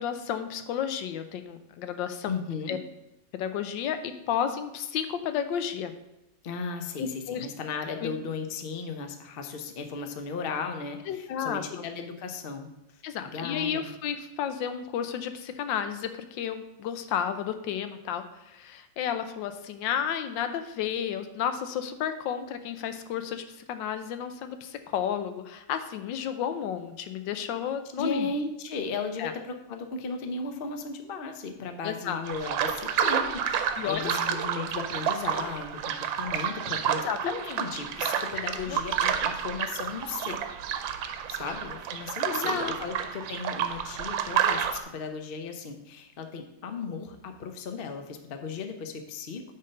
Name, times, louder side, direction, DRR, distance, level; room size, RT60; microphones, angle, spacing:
voice 1, 0.0-2.3 2.7-2.8 3.3-5.9 7.0-7.5 8.0-8.1 11.1-11.8 13.0-28.3 29.2-29.3 31.8-32.2 33.8-34.1 37.1-37.6 38.6-38.8 42.3-42.7, left 8 dB, 80° left, 9 dB, 1.3 m, -32 dB
voice 2, 2.3-2.8 6.4-13.9 28.0-40.4 41.3-49.4, left 4 dB, 55° left, 6 dB, 0.6 m, -36 dB
sound 1, 32.2-44.8, right 8 dB, 90° right, 1.4 m, -30 dB
8.9 x 4.0 x 5.3 m, 0.91 s
omnidirectional pair, 2.0 m